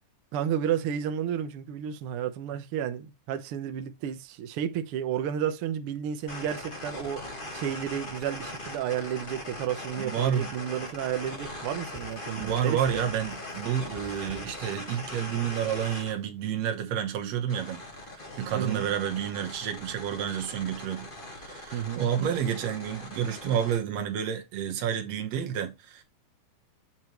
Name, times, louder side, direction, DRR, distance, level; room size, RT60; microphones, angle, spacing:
voice 1, 0.3-13.0 18.5-18.9 21.7-22.0, right 9 dB, 80° right, 1.2 m, -32 dB
sound 1, 6.3-16.1 17.5-23.8, left 1 dB, 50° left, 0.6 m, -40 dB
voice 2, 10.0-10.5 12.4-17.8 18.1-26.0, right 9 dB, 60° right, 2.2 m, -30 dB
sound 2, 11.9-15.5, left 5 dB, 70° left, 1.9 m, -50 dB
8.0 x 4.3 x 3.0 m
omnidirectional pair, 3.6 m